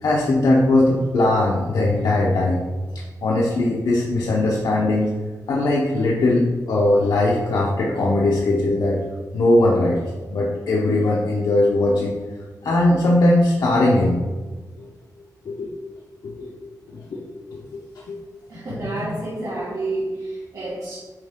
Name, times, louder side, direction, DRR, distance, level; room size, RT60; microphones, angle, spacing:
voice 1, 0.0-2.6 2.9-5.1 5.5-9.0 9.3-10.0 10.3-12.2 12.6-14.2 14.8-14.9 15.4-15.7 16.2-16.7 17.1-17.6 18.1-18.2, left 2 dB, 80° left, -4 dB, 0.9 m, -19 dB
voice 2, 18.5-21.0, right 2 dB, 55° right, -9 dB, 2.0 m, -29 dB
7.8 x 4.3 x 3.7 m, 1.4 s
wide cardioid pair, 115°, 7 cm